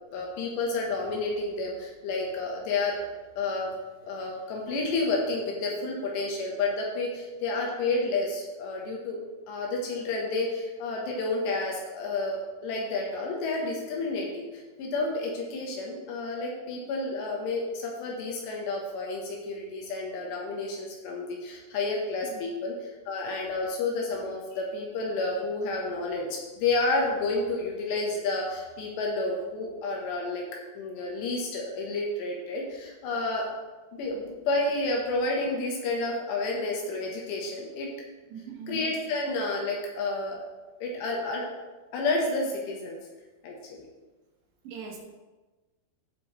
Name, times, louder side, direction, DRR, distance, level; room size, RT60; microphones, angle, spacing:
voice 1, 0.1-3.1 3.4-3.7 4.0-9.2 9.5-30.4 30.8-33.5 33.9-37.9 38.7-40.4 40.8-41.5 41.9-43.0 43.4-43.8, left 3 dB, 80° left, 0 dB, 3.2 m, -30 dB
voice 2, 38.3-38.8 44.7-45.0, right 7 dB, 90° right, 0 dB, 3.7 m, -40 dB
14.5 x 5.2 x 3.1 m, 1.2 s
omnidirectional pair, 5.1 m